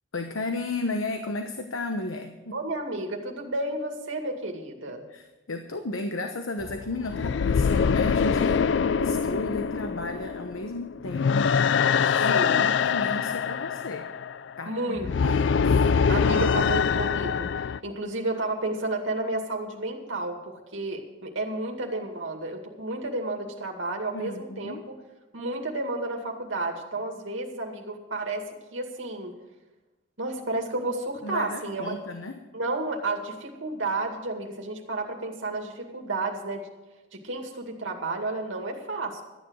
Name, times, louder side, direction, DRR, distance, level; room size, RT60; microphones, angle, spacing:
voice 1, 0.1-2.6 5.1-8.6 9.0-11.5 11.9-14.1 14.6-15.4 24.1-24.8 31.2-32.4, left 2 dB, 85° left, 5 dB, 1.0 m, -33 dB
voice 2, 2.5-5.0 12.3-12.6 14.7-15.4 16.1-24.9 25.3-29.3 30.2-31.9 32.5-36.7 37.1-39.2, right 2 dB, 75° right, 2 dB, 2.3 m, -32 dB
sound 1, 6.6-17.8, left 6 dB, 60° left, 0.3 m, -24 dB
13.5 x 9.6 x 6.4 m, 1.1 s
head